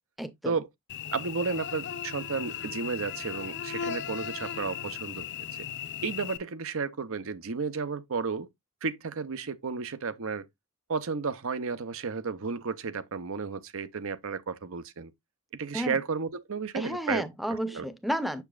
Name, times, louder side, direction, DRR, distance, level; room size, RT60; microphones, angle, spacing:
voice 1, 0.2-0.5 15.7-16.0 16.7-18.4, equal, ahead, 0.7 m, -32 dB
Cricket / Buzz, 0.9-6.4, left 8 dB, 55° left, 0.7 m, -37 dB
voice 2, 1.1-5.5 6.0-8.5 8.8-10.5 10.9-15.1 15.6-17.2 17.7-17.9, right 5 dB, 65° right, 0.7 m, -33 dB
6.9 x 6.9 x 2.4 m
head